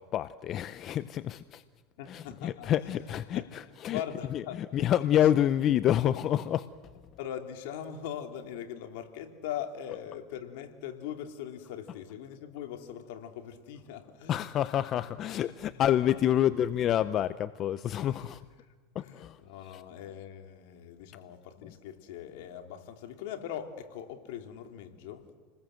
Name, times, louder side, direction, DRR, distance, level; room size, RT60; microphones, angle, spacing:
voice 1, 0.0-1.6 2.1-4.0 4.3-4.4 4.7-6.7 14.3-18.4 18.9-19.4 19.7-19.8, left 11 dB, 40° left, 14 dB, 0.6 m, -28 dB
voice 2, 2.0-3.5 3.9-4.8 5.1-5.3 7.2-14.4 15.4-16.3 18.0-25.3, left 9 dB, 70° left, 5 dB, 2.8 m, -41 dB
29.0 x 20.0 x 7.7 m, 1.5 s
supercardioid pair, 125°, 0 cm